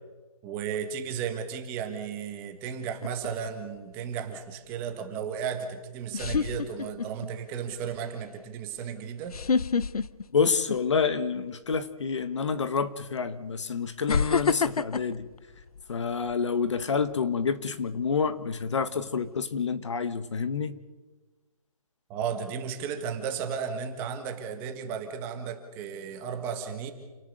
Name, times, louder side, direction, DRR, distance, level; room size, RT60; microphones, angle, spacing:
voice 1, 0.4-9.3 22.1-26.9, right 7 dB, 10° right, 6 dB, 1.5 m, -34 dB
sound 1, 3.0-3.5 5.4-5.5 6.1-7.3 7.7-8.0 9.3-11.1 11.5-11.8 12.8-12.9 14.1-16.3 16.8-17.1, left 5 dB, 85° left, 0.9 m, -28 dB
voice 2, 10.3-15.3 15.9-20.8, left 5 dB, 55° left, 12 dB, 1.7 m, -28 dB
28.5 x 18.5 x 6.7 m, 1.3 s
hypercardioid pair, 170°, 19 cm